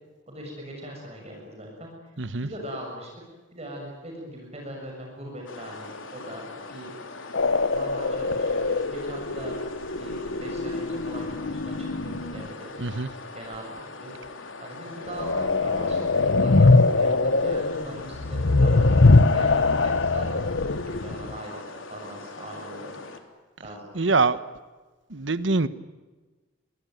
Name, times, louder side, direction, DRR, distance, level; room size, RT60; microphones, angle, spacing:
voice 1, 0.3-1.9 2.4-3.1 3.5-6.9 7.7-9.5 10.0-12.7 13.3-14.1 14.6-21.6 21.9-23.0 23.6-24.2, right 1 dB, 35° right, 0 dB, 6.9 m, -40 dB
voice 2, 2.2-2.5 12.8-13.1 23.9-24.4 25.1-25.7, right 3 dB, 65° right, 14 dB, 1.2 m, -24 dB
sound 1, 5.5-23.2, left 3 dB, 85° left, 3.8 m, -42 dB
sound 2, 7.3-12.5 15.0-21.4, left 3 dB, 70° left, 1.0 m, -22 dB
27.5 x 22.5 x 9.4 m, 1.2 s
head